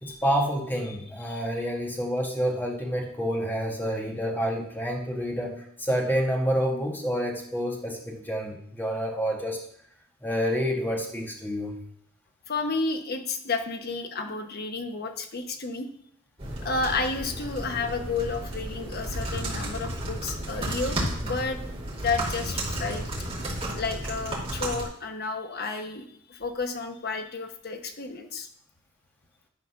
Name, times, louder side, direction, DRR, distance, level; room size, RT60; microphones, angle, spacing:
voice 1, 0.0-9.6 10.2-11.8, equal, 10° left, -1 dB, 1.7 m, -28 dB
voice 2, 12.5-15.9 16.6-21.6 22.0-23.1 23.8-28.5, left 3 dB, 45° left, 5 dB, 1.0 m, -31 dB
sound 1, 16.4-24.8, right 1 dB, 30° right, 2.6 m, -33 dB
11.5 x 4.1 x 5.8 m, 0.64 s
head